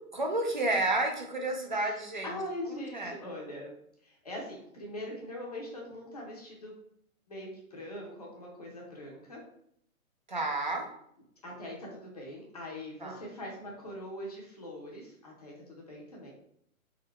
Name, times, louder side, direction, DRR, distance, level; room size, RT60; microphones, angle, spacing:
voice 1, 0.1-2.4 2.9-3.2 10.3-10.9 13.0-13.2, right 2 dB, 35° right, 3 dB, 0.5 m, -31 dB
voice 2, 2.2-3.7 4.0-6.7 7.3-9.4 11.4-16.3, left 1 dB, 30° left, -2 dB, 0.7 m, -42 dB
3.8 x 3.8 x 3.1 m, 0.70 s
hypercardioid pair, 175°, 43 cm